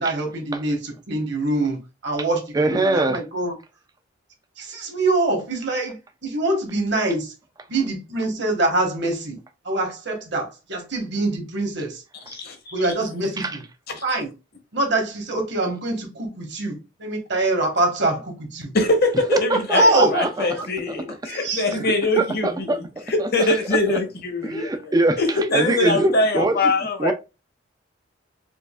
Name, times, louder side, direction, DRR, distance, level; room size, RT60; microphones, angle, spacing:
voice 1, 0.0-3.6 4.6-6.0 6.2-7.3 7.7-9.4 9.6-12.0 12.7-13.6 14.0-14.3 14.7-18.7 19.7-20.2 21.3-21.9, right 2 dB, 55° right, 1.2 m, -24 dB
voice 2, 2.5-3.2 13.4-13.6 19.3-20.6 20.9-21.2 21.7-22.8 23.2-23.8 24.4-26.7 27.0-27.1, right 2 dB, 20° right, 0.4 m, -23 dB
voice 3, 12.3-12.8 18.7-22.8 23.1-27.1, left 2 dB, 50° left, 0.9 m, -23 dB
4.6 x 2.4 x 2.3 m
head